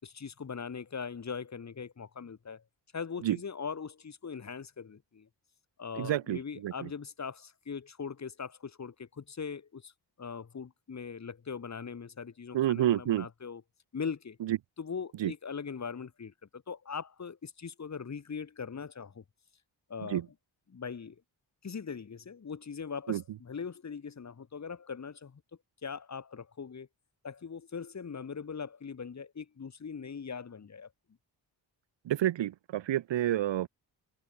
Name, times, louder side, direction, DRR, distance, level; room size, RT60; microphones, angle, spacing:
voice 1, 0.0-2.6 2.9-5.3 5.8-9.9 10.2-13.6 13.9-14.4 14.8-19.2 19.9-20.2 20.7-21.2 21.6-25.4 25.8-26.9 27.2-30.9, left 6 dB, 40° left, 4.8 m, -40 dB
voice 2, 6.0-6.9 12.5-13.3 14.5-14.6 15.2-15.3 20.1-20.2 23.1-23.2 32.1-33.7, right 12 dB, 85° right, 1.1 m, -29 dB
wide cardioid pair, 165°, 43 cm